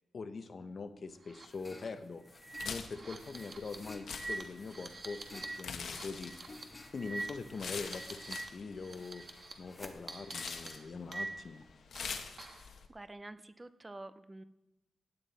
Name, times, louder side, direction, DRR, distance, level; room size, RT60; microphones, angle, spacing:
voice 1, 0.1-2.2 2.6-6.3 6.9-9.3 9.6-11.7, left 4 dB, 40° left, 10 dB, 0.8 m, -43 dB
sound 1, 1.2-1.5 1.8-1.9 2.4-8.5 8.8-9.5 10.1-11.6 11.9-12.7, right 2 dB, 35° right, 1.3 m, -45 dB
sound 2, 1.3-11.4, left 2 dB, 15° left, 1.0 m, -55 dB
sound 3, 2.5-12.9, left 5 dB, 65° left, 1.1 m, -46 dB
voice 2, 12.9-14.4, right 2 dB, 15° right, 12 dB, 0.5 m, -48 dB
16.5 x 9.5 x 4.1 m, 0.94 s
wide cardioid pair, 160°, 0 cm